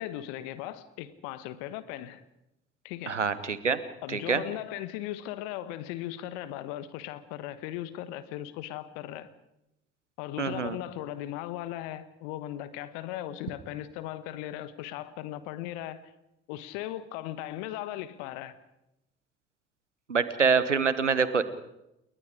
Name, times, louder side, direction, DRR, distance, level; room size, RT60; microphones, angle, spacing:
voice 1, 0.0-2.2 2.8-3.2 4.0-9.3 10.2-16.0 16.5-18.6, left 13 dB, 70° left, 1.4 m, -38 dB
voice 2, 3.1-3.8 4.1-4.4 10.4-10.8 20.1-21.4, right 5 dB, 90° right, 1.0 m, -25 dB
29.5 x 20.5 x 5.1 m
figure-of-eight pair, 45°, 35 cm